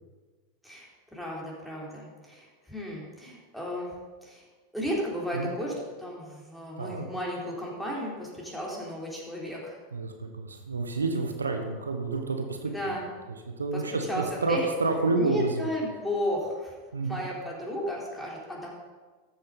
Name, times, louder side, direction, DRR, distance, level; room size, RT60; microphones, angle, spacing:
voice 1, 0.6-3.9 4.2-4.5 4.7-9.8 12.7-13.1 13.7-13.8 14.1-14.7 15.2-16.7 17.1-18.7, equal, 5° left, -4 dB, 3.8 m, -34 dB
voice 2, 9.9-12.9 13.6-15.7 16.9-17.2, right 3 dB, 85° right, 5 dB, 1.1 m, -29 dB
13.5 x 7.3 x 5.2 m, 1.4 s
figure-of-eight pair, 90°, 0 cm